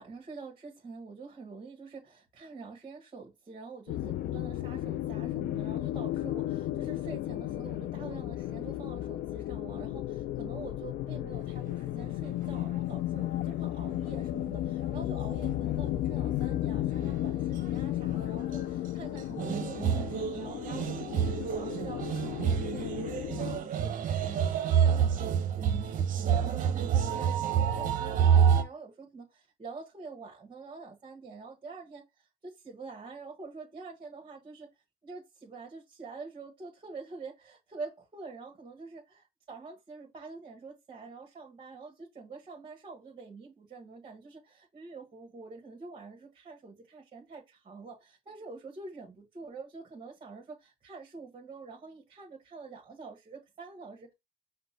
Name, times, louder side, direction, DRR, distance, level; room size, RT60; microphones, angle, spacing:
voice 1, 0.0-32.0 32.6-34.7 35.0-54.1, right 4 dB, 30° right, 1.4 m, -46 dB
sound 1, 3.9-23.6, left 14 dB, 70° left, 0.4 m, -34 dB
sound 2, 15.4-15.5 17.0-17.3 17.6-17.7 19.4-28.6, right 8 dB, 50° right, 0.8 m, -28 dB
5.2 x 2.2 x 4.3 m
cardioid pair, 110°, 17 cm